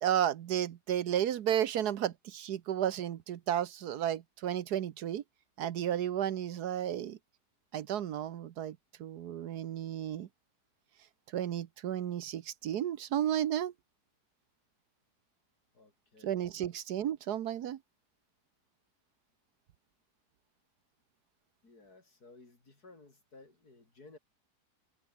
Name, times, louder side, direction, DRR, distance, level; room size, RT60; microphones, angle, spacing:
voice 1, 0.0-5.2 5.6-7.2 7.7-10.3 11.3-13.7 16.2-17.8, right 10 dB, 75° right, 1.4 m, -33 dB
voice 2, 15.7-16.4 21.6-24.2, left 3 dB, 65° left, 5.1 m, -57 dB
omnidirectional pair, 1.8 m